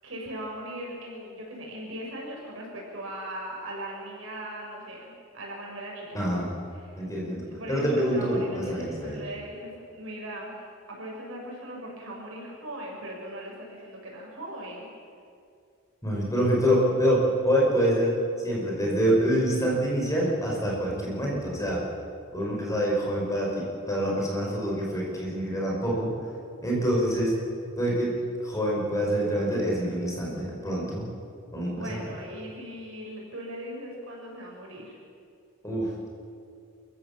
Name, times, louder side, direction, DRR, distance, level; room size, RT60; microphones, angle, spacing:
voice 1, 0.0-6.2 6.7-7.0 7.5-10.5 10.9-14.8 31.6-35.0, right 1 dB, 70° right, -2 dB, 6.5 m, -39 dB
voice 2, 6.1-6.5 7.0-9.2 16.0-18.2 18.4-21.8 22.3-26.1 26.6-27.3 27.8-28.2 28.4-31.1 31.5-32.0 35.6-35.9, equal, 15° left, -3 dB, 5.3 m, -26 dB
28.0 x 15.0 x 7.3 m, 2.4 s
head